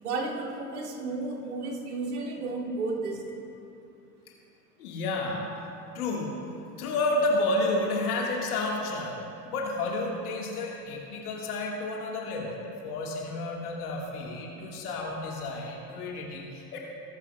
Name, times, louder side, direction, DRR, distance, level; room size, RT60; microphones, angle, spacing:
voice 1, 0.0-3.4, right 3 dB, 70° right, -3 dB, 2.5 m, -33 dB
voice 2, 4.8-5.5 6.0-6.5 6.8-9.2 9.5-16.8, left 2 dB, 65° left, -1 dB, 1.6 m, -31 dB
19.5 x 11.5 x 2.2 m, 2.6 s
figure-of-eight pair, 75°, 48 cm